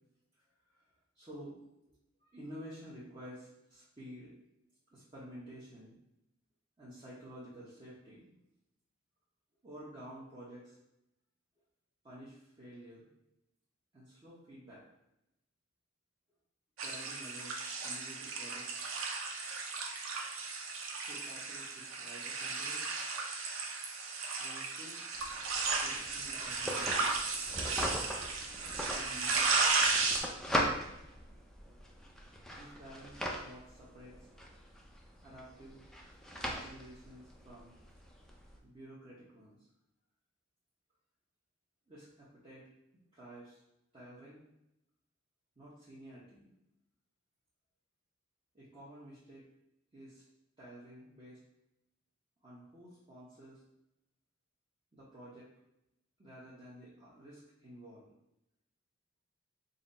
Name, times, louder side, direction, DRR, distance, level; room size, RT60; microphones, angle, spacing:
voice 1, 0.4-1.6 2.2-4.3 4.9-5.9 6.8-8.4 9.6-10.8 12.0-13.1 13.9-14.8 16.8-18.8 21.1-22.9 24.4-25.0 25.8-27.3 28.9-29.6 30.5-30.7 32.5-34.3 35.2-35.8 36.4-37.7 38.6-39.6 41.9-42.7 43.1-43.6 43.9-44.4 45.6-46.6 48.5-49.5 49.9-50.2 50.6-51.4 52.4-53.6 54.9-55.5 56.2-58.1, equal, 25° right, -9 dB, 0.8 m, -51 dB
sound 1, 16.8-30.2, right 4 dB, 85° right, 0.6 m, -35 dB
sound 2, 25.1-38.6, equal, 5° left, 0.4 m, -41 dB
3.9 x 2.0 x 3.9 m, 0.85 s
head